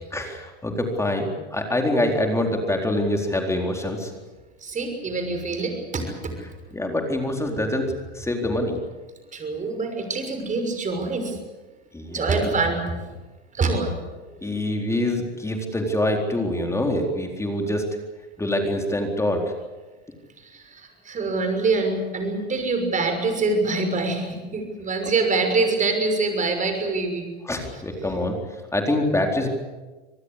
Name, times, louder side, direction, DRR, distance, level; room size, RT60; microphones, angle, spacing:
voice 1, 0.1-4.1 6.7-7.9 8.1-8.8 11.9-12.5 14.3-17.8 18.4-19.5 27.5-28.4 28.7-29.5, left 1 dB, 10° left, 2 dB, 4.0 m, -25 dB
voice 2, 4.6-6.4 9.3-11.4 12.1-13.1 13.5-13.9 20.4-27.3 27.7-27.8, right 3 dB, 25° right, 6 dB, 6.2 m, -25 dB
26.5 x 19.0 x 8.3 m, 1.2 s
hypercardioid pair, 100°, 31 cm